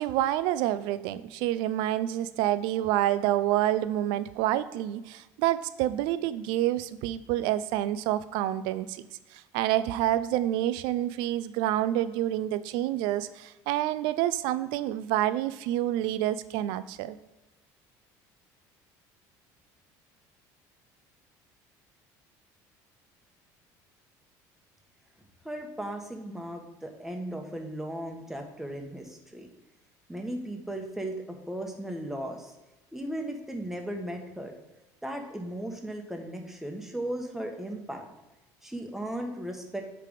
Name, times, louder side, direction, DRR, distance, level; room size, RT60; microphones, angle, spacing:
voice 1, 0.0-9.0 9.3-17.2, right 13 dB, 85° right, 15 dB, 0.4 m, -28 dB
voice 2, 25.4-29.5 30.1-32.5 32.9-34.5 35.0-38.0 38.6-39.8, right 1 dB, 5° right, 3 dB, 1.1 m, -36 dB
9.2 x 3.4 x 5.0 m, 1.1 s
cardioid pair, 125°, 8 cm